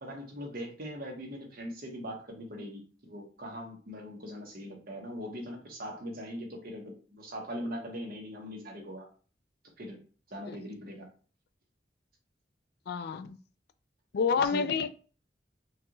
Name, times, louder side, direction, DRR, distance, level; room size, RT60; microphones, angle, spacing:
voice 1, 0.0-9.1 9.8-10.0 10.3-11.1 14.3-14.7, equal, 55° right, 1.2 m, -41 dB
voice 2, 12.9-13.4 14.1-14.9, left 5 dB, 65° left, 0.4 m, -28 dB
4.5 x 2.4 x 3.0 m
head